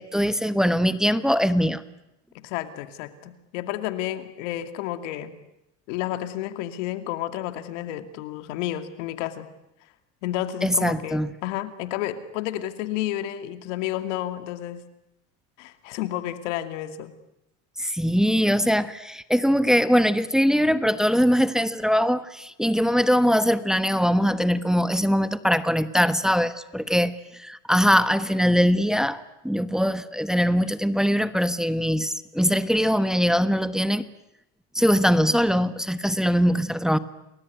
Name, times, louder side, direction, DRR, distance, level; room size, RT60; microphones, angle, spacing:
voice 1, 0.0-1.8 10.6-11.3 17.8-34.0 34.7-37.0, equal, ahead, 13 dB, 1.3 m, -22 dB
voice 2, 2.3-5.4 5.9-9.5 10.2-14.8 15.6-17.1, left 13 dB, 90° left, 10 dB, 2.5 m, -31 dB
29.5 x 20.5 x 9.5 m, 0.85 s
supercardioid pair, 115°, 36 cm